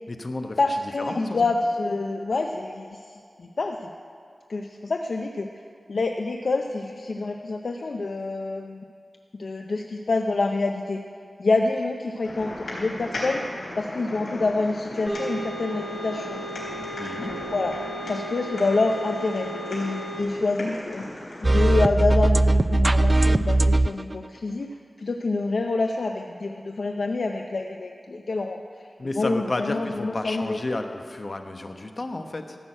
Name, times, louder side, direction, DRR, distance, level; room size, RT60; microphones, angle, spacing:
voice 1, 0.1-1.5 17.0-17.3 29.0-32.6, left 2 dB, 50° left, 5 dB, 1.1 m, -32 dB
voice 2, 0.6-3.9 4.5-5.5 5.9-8.8 9.4-11.0 11.4-13.4 13.8-16.4 17.5-17.8 18.1-21.0 21.4-28.6 29.2-30.6, left 3 dB, 70° left, 4 dB, 0.6 m, -27 dB
sound 1, 12.2-21.8, left 1 dB, 90° left, 4.2 m, -36 dB
sound 2, 15.1-20.2, right 1 dB, 15° right, 1.9 m, -35 dB
sound 3, 21.4-24.1, right 2 dB, 30° right, 0.3 m, -19 dB
14.0 x 6.3 x 8.9 m, 2.3 s
wide cardioid pair, 65°, 0 cm